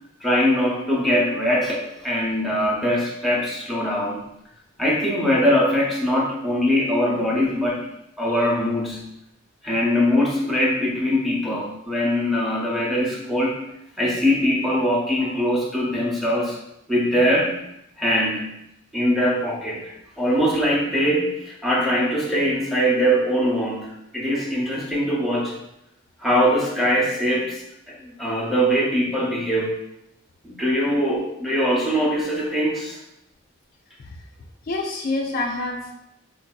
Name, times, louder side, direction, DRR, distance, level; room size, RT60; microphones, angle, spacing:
voice 1, 0.2-4.2 4.8-7.8 8.2-9.0 9.6-13.5 14.0-16.6 16.9-17.5 18.0-18.5 18.9-19.9 20.2-23.9 24.1-25.6 26.2-27.6 27.9-29.7 30.4-33.0, equal, ahead, -4 dB, 0.6 m, -22 dB
voice 2, 34.7-35.9, left 2 dB, 45° left, 0 dB, 0.3 m, -27 dB
4.1 x 2.6 x 2.2 m, 0.81 s
head